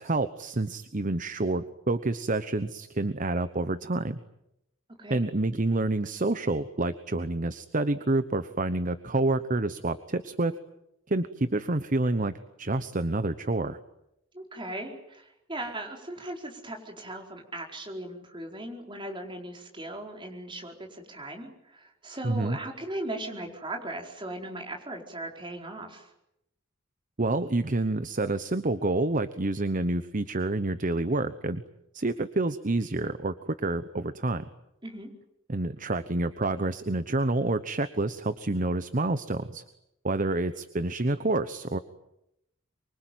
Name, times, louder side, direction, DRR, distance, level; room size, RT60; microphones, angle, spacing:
voice 1, 0.0-4.2 5.1-10.5 11.1-12.3 12.6-13.8 22.2-22.6 27.2-31.6 31.9-34.5 35.5-39.6 40.0-41.8, right 2 dB, 40° right, 12 dB, 1.0 m, -28 dB
voice 2, 14.3-26.1 34.8-35.1, right 1 dB, 25° right, 2 dB, 4.7 m, -38 dB
25.0 x 24.0 x 9.4 m, 0.83 s
head